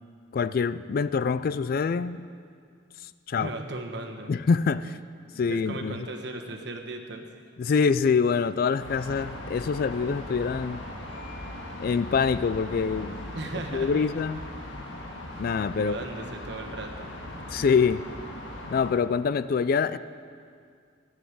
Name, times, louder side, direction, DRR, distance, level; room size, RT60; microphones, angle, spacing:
voice 1, 0.3-2.2 3.0-3.5 4.3-5.0 5.4-6.0 7.6-10.8 11.8-13.2 13.7-14.4 15.4-16.0 17.5-18.0 18.7-20.0, left 5 dB, 50° left, 15 dB, 0.3 m, -25 dB
voice 2, 3.4-4.3 5.3-7.3 13.3-14.0 15.8-17.1, right 2 dB, 60° right, 3 dB, 1.2 m, -37 dB
sound 1, 8.8-18.9, left 1 dB, 70° left, 1.8 m, -39 dB
13.5 x 6.5 x 9.3 m, 2.3 s
head